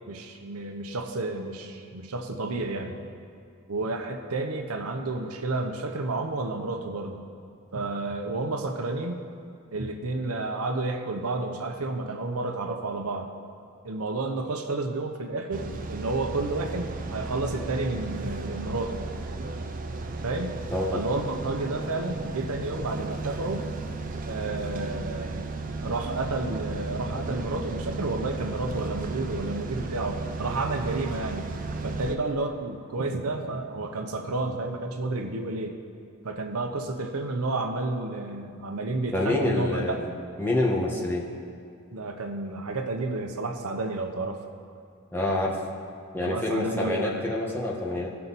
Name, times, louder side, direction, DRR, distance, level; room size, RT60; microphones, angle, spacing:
voice 1, 0.1-3.0 3.7-7.2 7.7-9.2 9.7-13.3 13.8-19.1 20.2-20.6 20.9-23.7 24.3-25.5 25.8-31.5 31.8-35.7 36.2-40.0 41.9-44.4 46.2-47.3, right 2 dB, 85° right, 5 dB, 0.8 m, -31 dB
sound 1, 15.5-32.2, right 3 dB, 40° right, 0.5 m, -34 dB
voice 2, 39.1-40.1 40.4-41.3 45.1-45.6 46.1-48.1, left 2 dB, 10° left, -4 dB, 1.2 m, -27 dB
16.5 x 5.7 x 4.1 m, 2.5 s
head